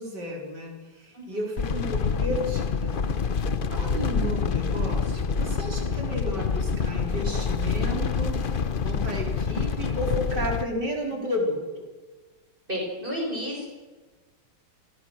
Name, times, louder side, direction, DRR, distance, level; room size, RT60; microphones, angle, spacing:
voice 1, 0.0-3.0 3.7-8.4 8.8-11.9, equal, 60° right, 1 dB, 4.8 m, -32 dB
sound 1, 1.6-10.6, left 5 dB, 55° left, 0.5 m, -27 dB
voice 2, 12.7-13.7, equal, 25° right, -1 dB, 6.3 m, -31 dB
27.5 x 17.5 x 6.4 m, 1.3 s
omnidirectional pair, 2.1 m